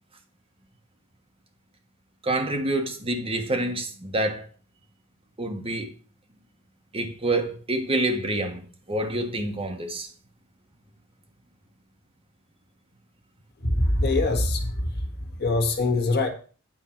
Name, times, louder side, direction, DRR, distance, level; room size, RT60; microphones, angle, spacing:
voice 1, 2.2-4.5 5.4-5.9 6.9-10.1, right 1 dB, 25° right, 1.4 m, -27 dB
voice 2, 13.6-16.3, left 2 dB, 50° left, 1.5 m, -24 dB
9.1 x 4.5 x 5.9 m
head